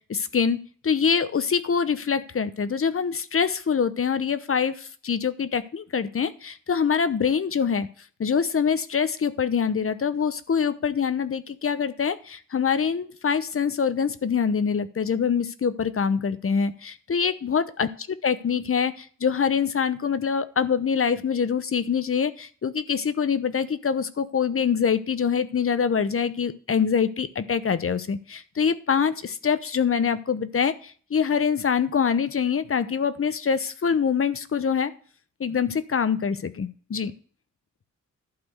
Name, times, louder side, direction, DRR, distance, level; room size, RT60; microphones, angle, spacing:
voice 1, 0.1-0.6 0.8-7.9 8.2-17.9 18.2-34.9 35.4-37.1, left 6 dB, 45° left, 13 dB, 0.9 m, -24 dB
12.0 x 4.3 x 7.9 m, 0.44 s
wide cardioid pair, 110°, 30 cm